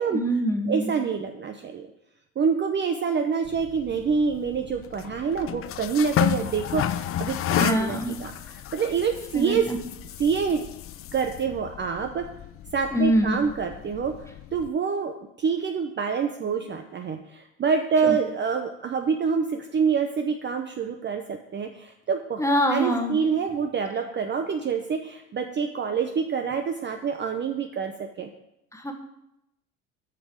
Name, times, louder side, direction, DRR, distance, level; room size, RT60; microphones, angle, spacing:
voice 1, 0.1-0.9 7.5-8.1 9.3-9.8 12.9-13.4 18.0-18.2 22.4-23.2 28.7-28.9, equal, 5° left, 3 dB, 1.4 m, -24 dB
voice 2, 0.7-1.9 2.4-9.7 10.2-10.6 11.1-12.3 12.7-15.1 15.4-22.4 22.7-28.3, right 6 dB, 25° right, 5 dB, 0.7 m, -26 dB
sound 1, 3.4-14.7, left 11 dB, 35° left, 0.4 m, -32 dB
6.7 x 5.3 x 6.2 m, 0.84 s
hypercardioid pair, 75°, 42 cm